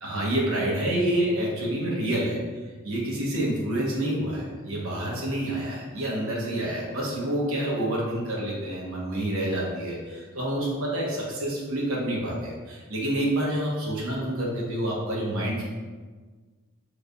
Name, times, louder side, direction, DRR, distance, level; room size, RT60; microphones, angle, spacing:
voice 1, 0.0-2.4 2.8-15.6, right 1 dB, 75° right, -4 dB, 0.9 m, -28 dB
3.8 x 3.2 x 2.2 m, 1.4 s
head